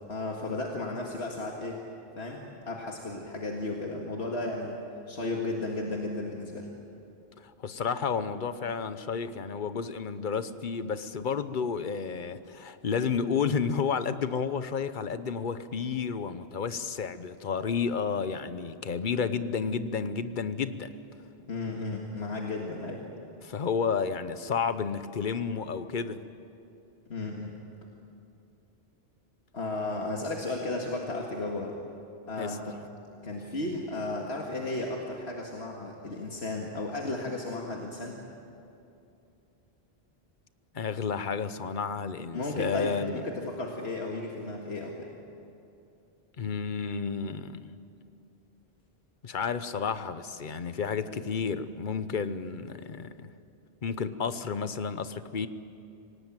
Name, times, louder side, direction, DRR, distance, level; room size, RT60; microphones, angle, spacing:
voice 1, 0.1-1.8 2.2-4.8 5.1-6.7 21.5-23.0 27.1-27.6 29.5-31.8 32.3-32.8 33.2-38.2 42.3-44.9, left 2 dB, 85° left, 0 dB, 2.1 m, -34 dB
voice 2, 7.4-20.9 23.4-26.3 32.4-32.6 40.7-43.3 46.4-47.7 49.2-53.3 53.8-55.5, left 6 dB, 50° left, 12 dB, 1.0 m, -31 dB
26.5 x 18.0 x 9.1 m, 2.7 s
omnidirectional pair, 1.1 m